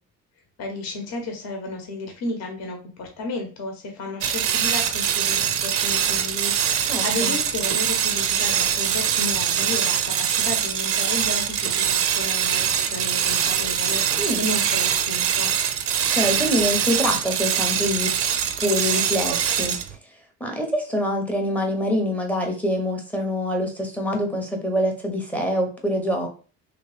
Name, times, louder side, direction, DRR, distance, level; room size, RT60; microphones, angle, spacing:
voice 1, 0.6-15.5, left 2 dB, 55° left, 3 dB, 0.9 m, -33 dB
sound 1, 4.2-19.9, right 9 dB, 45° right, 0.4 m, -23 dB
voice 2, 6.9-7.3 14.2-14.4 16.1-18.1 18.6-19.8 20.4-26.3, equal, 5° left, 2 dB, 0.6 m, -25 dB
3.1 x 2.9 x 3.2 m, 0.37 s
cardioid pair, 160°, 32 cm